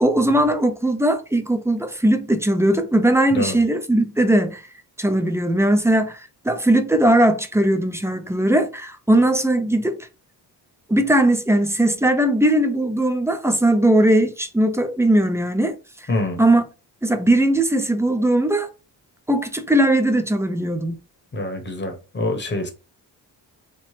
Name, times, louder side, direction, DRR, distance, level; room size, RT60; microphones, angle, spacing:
voice 1, 0.0-4.6 5.0-10.1 10.9-15.8 16.4-16.6 17.0-18.7 19.3-21.0, right 1 dB, 5° right, 0.4 m, -19 dB
voice 2, 16.1-16.4 21.3-22.7, left 2 dB, 25° left, 0.9 m, -25 dB
2.9 x 2.0 x 3.1 m
cardioid pair, 75°, 41 cm